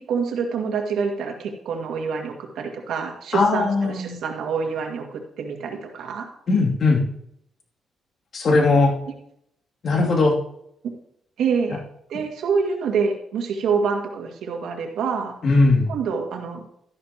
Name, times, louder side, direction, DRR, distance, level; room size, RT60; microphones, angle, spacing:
voice 1, 0.1-6.3 11.4-11.8 12.1-15.4 15.9-16.6, right 5 dB, 80° right, 2 dB, 2.0 m, -26 dB
voice 2, 3.3-4.2 6.5-7.0 8.3-8.9 9.8-10.4 15.4-15.9, left 3 dB, 50° left, -1 dB, 2.7 m, -18 dB
12.5 x 11.0 x 3.0 m, 0.73 s
cardioid pair, 115°, 0 cm